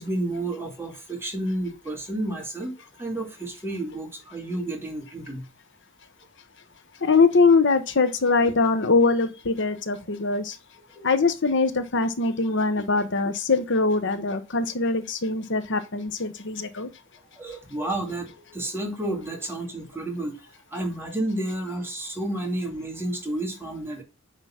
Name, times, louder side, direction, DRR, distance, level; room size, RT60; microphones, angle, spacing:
voice 1, 0.0-5.5 10.9-11.1 17.4-20.3 20.7-24.0, right 1 dB, 10° right, 2.3 m, -31 dB
voice 2, 7.0-10.5 11.0-16.9, left 4 dB, 60° left, 1.0 m, -22 dB
9.1 x 4.0 x 5.8 m
head